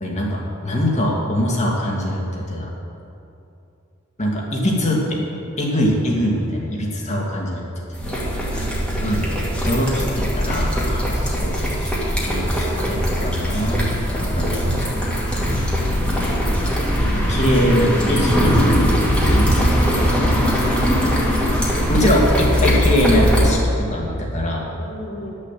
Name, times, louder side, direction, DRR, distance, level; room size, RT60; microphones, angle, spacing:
voice 1, 0.0-2.7 4.2-5.2 5.6-7.7 8.1-8.2 9.0-15.7 17.1-18.3 18.7-19.0 19.3-20.2 21.9-24.7, equal, 35° left, -2 dB, 2.0 m, -23 dB
sound 1, 7.9-23.5, equal, 5° left, 2.1 m, -20 dB
voice 2, 17.0-19.1 24.8-25.3, equal, 80° left, -1 dB, 2.2 m, -34 dB
11.0 x 6.8 x 7.4 m, 2.7 s
head